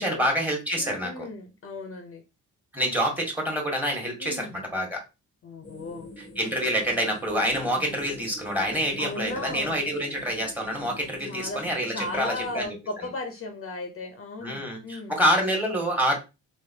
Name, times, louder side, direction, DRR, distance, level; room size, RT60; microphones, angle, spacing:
voice 1, 0.0-1.3 2.7-5.0 6.2-12.7 14.4-16.1, equal, 5° right, 1 dB, 1.5 m, -27 dB
voice 2, 0.7-2.2 4.2-4.6 5.4-6.1 9.0-9.8 11.3-15.2, left 2 dB, 45° left, 4 dB, 0.8 m, -36 dB
sound 1, 5.6-12.7, left 1 dB, 20° left, 0.8 m, -45 dB
3.4 x 2.8 x 2.8 m, 0.28 s
cardioid pair, 90°, 30 cm